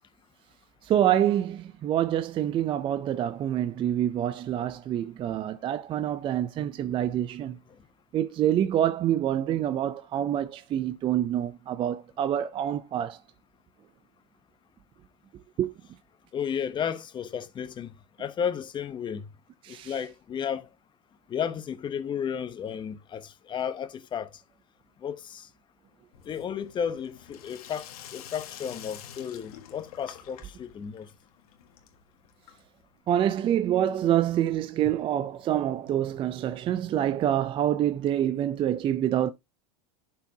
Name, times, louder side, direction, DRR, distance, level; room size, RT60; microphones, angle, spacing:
voice 1, 0.8-7.6 8.1-13.2 15.6-15.7 19.6-19.9 33.1-39.3, right 11 dB, 25° right, 0.5 m, -26 dB
voice 2, 16.3-19.3 19.7-20.7 21.3-24.3 25.0-25.5 26.2-31.1, left 8 dB, 25° left, 0.9 m, -33 dB
Sink (filling or washing), 26.1-32.9, left 10 dB, 75° left, 1.6 m, -48 dB
11.5 x 4.5 x 2.8 m
supercardioid pair, 125°, 19 cm